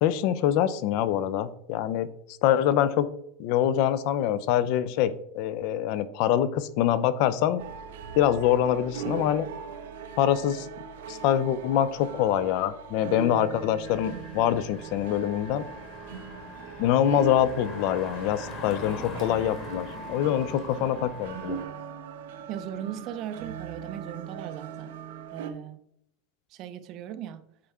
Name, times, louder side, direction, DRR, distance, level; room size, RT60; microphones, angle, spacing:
voice 1, 0.0-2.1 2.4-3.1 3.4-7.6 8.1-9.5 10.2-10.7 11.1-15.6 16.8-21.6, left 11 dB, 45° left, 0.5 m, -25 dB
sound 1, 7.6-25.5, right 7 dB, 80° right, 0.8 m, -40 dB
Engine, 13.8-21.6, left 3 dB, 30° left, 1.4 m, -43 dB
voice 2, 22.5-24.9 25.3-25.8 26.5-27.4, right 10 dB, 35° right, 0.5 m, -38 dB
8.7 x 4.3 x 3.6 m
supercardioid pair, 170°, 0 cm